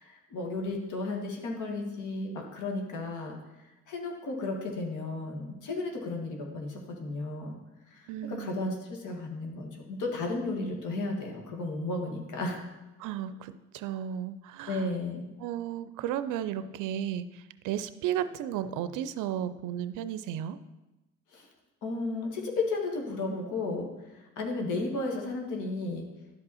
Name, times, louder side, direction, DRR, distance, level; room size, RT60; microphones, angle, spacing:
voice 1, 0.0-3.4 3.9-7.6 7.9-12.6 14.7-15.3 21.3-21.5 21.8-23.9 24.1-26.1, left 2 dB, 80° left, 1 dB, 1.8 m, -34 dB
voice 2, 8.1-8.6 13.0-14.9 15.4-20.6, right 10 dB, 90° right, 13 dB, 0.4 m, -34 dB
11.5 x 5.3 x 4.2 m, 1.0 s
cardioid pair, 90°, 30 cm